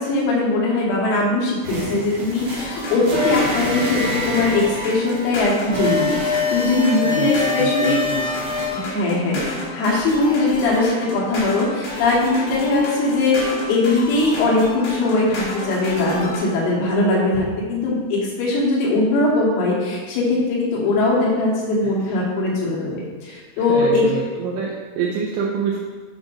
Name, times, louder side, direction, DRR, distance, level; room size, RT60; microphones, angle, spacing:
voice 1, 0.0-8.0 8.7-22.9 23.2-24.0, left 2 dB, 80° left, -4 dB, 4.0 m, -20 dB
sound 1, 1.6-8.7, left 2 dB, 60° right, 1.9 m, -25 dB
sound 2, 2.4-16.4, left 1 dB, 60° left, 3.9 m, -31 dB
voice 2, 7.0-8.5 23.6-25.8, right 5 dB, 85° right, -3 dB, 2.7 m, -27 dB
9.3 x 5.1 x 2.5 m, 1.4 s
omnidirectional pair, 6.0 m